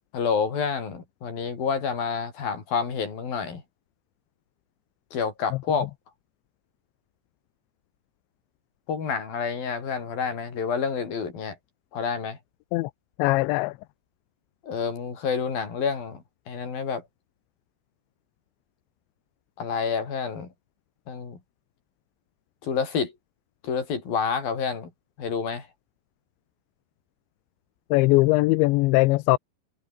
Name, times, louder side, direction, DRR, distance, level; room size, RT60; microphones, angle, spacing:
voice 1, 0.1-3.6 5.1-5.9 8.9-11.6 11.9-12.4 14.6-17.0 19.6-20.5 21.1-21.4 22.6-23.1 23.6-24.9 25.2-25.7, left 6 dB, 50° left, 6.5 m, -28 dB
voice 2, 13.2-13.7 27.9-29.4, left 21 dB, 80° left, 2.9 m, -20 dB
omnidirectional pair, 5.4 m